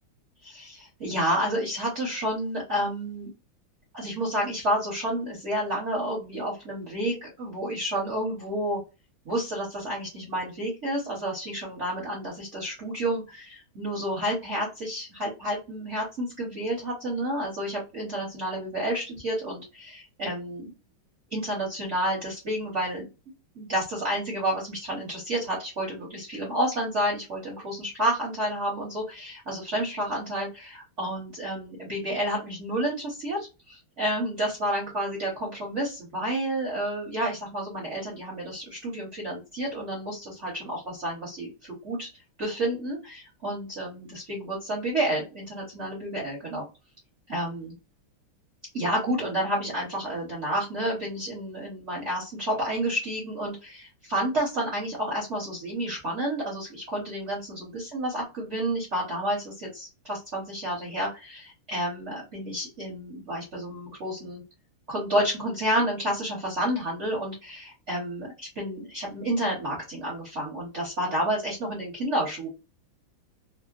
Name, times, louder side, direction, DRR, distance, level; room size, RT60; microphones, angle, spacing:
voice 1, 0.4-3.3 3.9-8.8 9.2-20.7 21.3-23.1 23.5-46.6 47.3-47.7 48.7-64.4 64.9-72.5, right 1 dB, 45° right, -4 dB, 1.0 m, -30 dB
3.6 x 2.1 x 2.4 m, 0.28 s
omnidirectional pair, 2.3 m